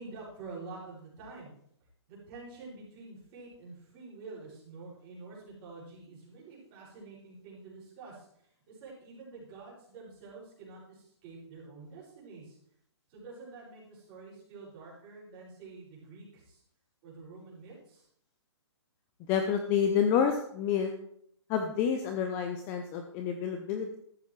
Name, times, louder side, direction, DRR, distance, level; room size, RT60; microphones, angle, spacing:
voice 1, 0.0-1.5 2.1-12.6 13.1-16.6 17.0-18.1, right 3 dB, 25° right, -6 dB, 5.7 m, -48 dB
voice 2, 19.3-20.9 21.5-24.0, left 7 dB, 15° left, 6 dB, 0.5 m, -29 dB
13.5 x 12.5 x 3.1 m, 0.69 s
hypercardioid pair, 170°, 15 cm